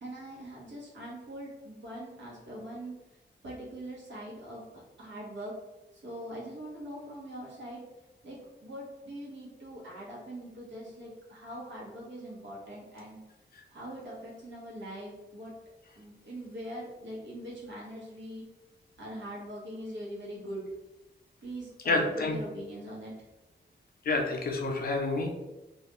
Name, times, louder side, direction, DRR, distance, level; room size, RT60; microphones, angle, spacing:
voice 1, 0.0-2.9 3.4-5.5 5.9-7.8 8.2-13.2 13.7-15.5 16.0-18.4 19.0-20.6 21.4-23.1, right 1 dB, 75° right, -4 dB, 0.9 m, -42 dB
voice 2, 21.9-22.4 24.0-25.3, left 3 dB, 50° left, 2 dB, 0.4 m, -28 dB
2.3 x 2.2 x 2.9 m, 1.0 s
wide cardioid pair, 150°, 19 cm